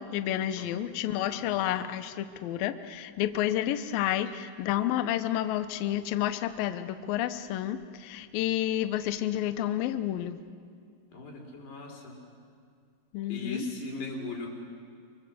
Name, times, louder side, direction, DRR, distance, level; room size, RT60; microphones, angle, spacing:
voice 1, 0.0-10.4 13.1-13.7, left 12 dB, 75° left, 9 dB, 2.3 m, -30 dB
voice 2, 1.3-1.7 11.1-12.2 13.3-14.5, left 3 dB, 90° left, 1 dB, 6.6 m, -38 dB
26.0 x 24.5 x 7.8 m, 2.2 s
omnidirectional pair, 4.7 m